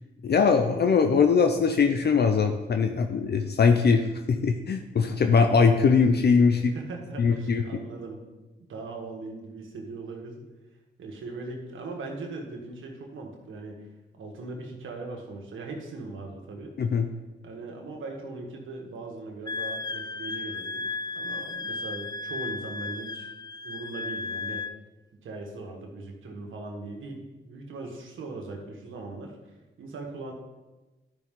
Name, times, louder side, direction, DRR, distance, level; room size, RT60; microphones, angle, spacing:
voice 1, 0.2-6.6 7.2-7.6 16.8-17.1, left 5 dB, 55° left, 6 dB, 0.7 m, -21 dB
voice 2, 6.5-8.2 8.6-10.4 11.0-13.8 14.1-16.7 17.4-20.9 21.2-23.3 23.6-24.7 25.2-30.3, right 3 dB, 85° right, 1 dB, 1.6 m, -39 dB
Wind instrument woodwind instrument, 19.5-24.8, left 3 dB, 20° left, 0.4 m, -34 dB
12.0 x 5.5 x 3.7 m, 1.1 s
cardioid pair, 55°, 20 cm